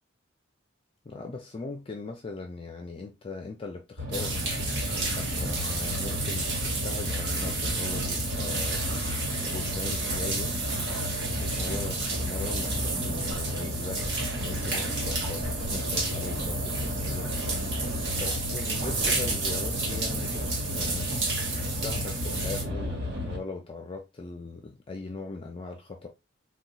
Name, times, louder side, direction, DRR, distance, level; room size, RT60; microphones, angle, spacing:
voice 1, 1.0-4.4 5.2-8.8 9.4-10.5 11.4-17.3 18.1-21.1 21.6-26.1, left 3 dB, 30° left, 0.4 m, -39 dB
sound 1, 4.0-23.4, left 1 dB, 85° right, 1.0 m, -33 dB
sound 2, 4.1-22.6, right 3 dB, 60° right, 0.9 m, -32 dB
3.9 x 2.2 x 2.3 m
head